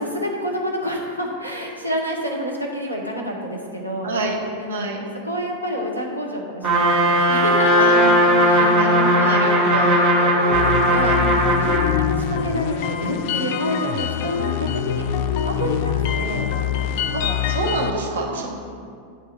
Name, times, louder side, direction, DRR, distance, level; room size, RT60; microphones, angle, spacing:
voice 1, 0.0-4.1 4.6-9.5 10.2-11.2 11.6-16.5 16.9-17.4 18.1-18.5, equal, 85° right, -1 dB, 1.0 m, -29 dB
voice 2, 4.0-4.4 4.7-5.1 7.8-10.1 10.9-11.3 17.1-18.5, right 2 dB, 65° right, 0 dB, 0.9 m, -27 dB
Trumpet, 6.6-11.9, equal, 45° right, 1.5 m, -17 dB
sound 1, 10.5-17.9, left 8 dB, 45° left, 0.3 m, -24 dB
9.5 x 3.6 x 4.3 m, 2.2 s
figure-of-eight pair, 90°, 0 cm